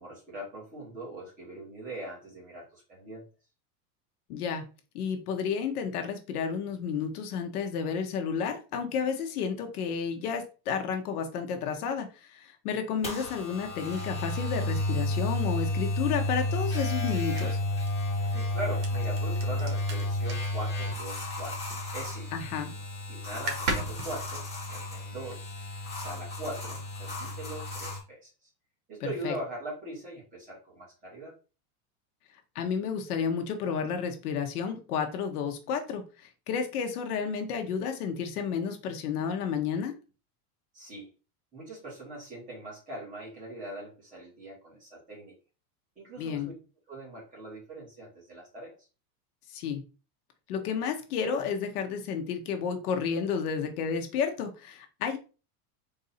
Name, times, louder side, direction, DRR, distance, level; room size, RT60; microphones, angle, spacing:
voice 1, 0.0-3.2 18.3-21.6 21.9-22.3 23.1-25.6 25.9-28.3 28.9-31.3 40.7-41.1 41.5-45.3 46.0-46.5 46.9-48.7, right 1 dB, 15° right, -5 dB, 1.5 m, -41 dB
voice 2, 4.3-4.6 4.9-17.6 22.3-22.7 29.2-29.3 32.5-39.9 46.2-46.5 49.5-49.8 50.5-55.2, left 6 dB, 70° left, 5 dB, 1.0 m, -31 dB
sound 1, 13.0-28.0, left 1 dB, 15° left, 1.3 m, -32 dB
sound 2, 15.4-22.0 22.3-22.7 23.0-23.1 23.3-25.7, right 3 dB, 70° right, 1.4 m, -40 dB
4.0 x 2.6 x 3.9 m, 0.33 s
supercardioid pair, 175°, 47 cm